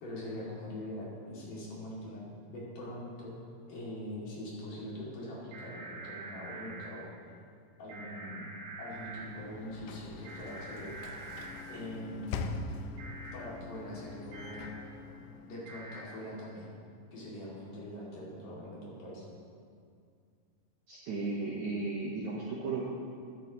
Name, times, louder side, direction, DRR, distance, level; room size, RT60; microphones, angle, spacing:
voice 1, 0.0-3.3 3.7-7.1 7.8-8.5 8.8-11.0 11.7-12.6 13.3-14.9 15.4-16.7 17.1-19.3, left 1 dB, 55° left, -6 dB, 3.8 m, -43 dB
sound 1, 5.5-6.9 7.9-9.3 10.3-11.6 13.0-13.3 14.3-14.7 15.7-16.0, right 3 dB, 90° right, 4.1 m, -45 dB
Sliding door / Slam, 8.9-15.9, left 4 dB, 85° left, 2.6 m, -43 dB
voice 2, 20.9-22.9, right 3 dB, 70° right, -4 dB, 1.8 m, -35 dB
13.5 x 12.0 x 3.0 m, 2.3 s
omnidirectional pair, 4.6 m